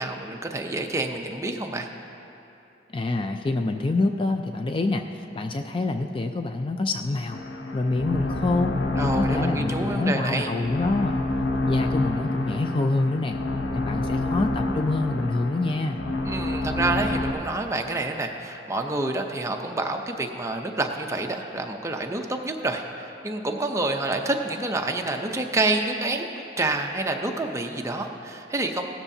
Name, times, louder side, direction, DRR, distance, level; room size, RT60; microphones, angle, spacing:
voice 1, 0.0-1.9 9.0-10.5 16.2-28.9, right 2 dB, 15° right, 3 dB, 0.6 m, -28 dB
voice 2, 2.9-5.1 5.3-7.4 7.7-8.7 9.0-11.2 11.6-13.4 13.7-16.0, left 2 dB, 30° left, 6 dB, 0.4 m, -26 dB
sound 1, 7.3-17.3, left 2 dB, 80° left, 0.9 m, -28 dB
17.0 x 13.0 x 2.7 m, 2.9 s
head